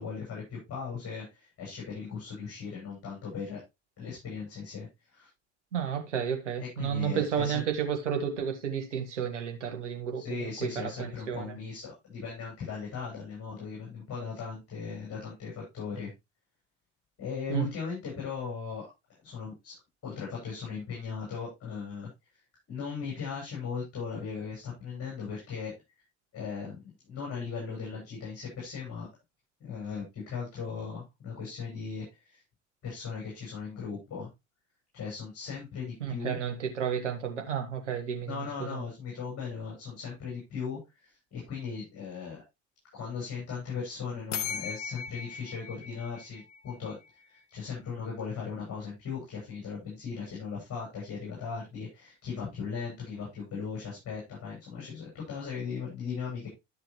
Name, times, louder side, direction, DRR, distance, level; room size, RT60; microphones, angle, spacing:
voice 1, 0.0-3.6 4.0-5.3 6.6-7.6 10.1-16.1 17.2-18.8 19.2-19.7 20.0-22.1 22.7-25.7 26.3-29.1 29.6-32.4 32.8-34.3 34.9-36.4 38.2-42.4 42.9-47.0 47.3-56.5, left 5 dB, 40° left, 7.6 m, -38 dB
voice 2, 5.7-10.2 10.6-11.5 17.5-17.7 36.0-38.8, right 8 dB, 80° right, 1.9 m, -32 dB
sound 1, 44.3-47.1, left 7 dB, 85° left, 0.6 m, -38 dB
12.5 x 6.8 x 3.1 m
figure-of-eight pair, 60°, 36 cm